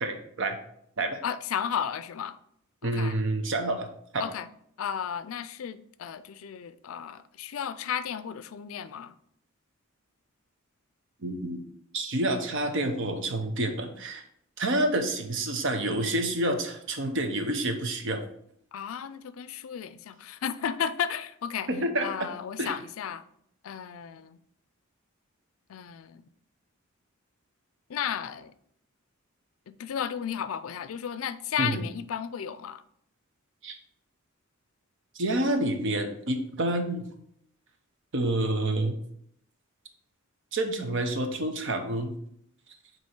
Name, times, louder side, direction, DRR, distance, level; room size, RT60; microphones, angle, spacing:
voice 1, 0.0-0.6 1.0-1.2 2.8-3.9 4.1-4.2 11.2-11.6 11.9-14.2 14.6-18.2 21.7-22.3 22.6-22.8 31.6-31.8 33.6-33.8 35.1-37.0 38.1-39.0 40.5-42.1, right 1 dB, 65° right, 0.9 m, -28 dB
voice 2, 1.2-2.4 2.8-3.2 4.2-4.5 4.8-9.1 18.7-21.7 22.0-23.2 23.6-24.4 25.7-26.3 27.9-28.5 29.7-32.8, left 8 dB, 70° left, 0.4 m, -34 dB
7.7 x 3.1 x 4.5 m
head